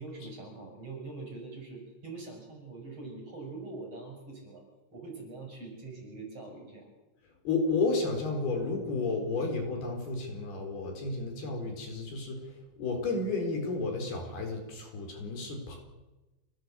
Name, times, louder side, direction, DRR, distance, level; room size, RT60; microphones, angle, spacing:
voice 1, 0.0-4.6 4.9-6.9, right 3 dB, 35° right, 2 dB, 7.3 m, -43 dB
voice 2, 7.4-15.8, left 3 dB, 60° left, 3 dB, 6.1 m, -32 dB
26.0 x 19.0 x 8.2 m, 1.1 s
omnidirectional pair, 5.2 m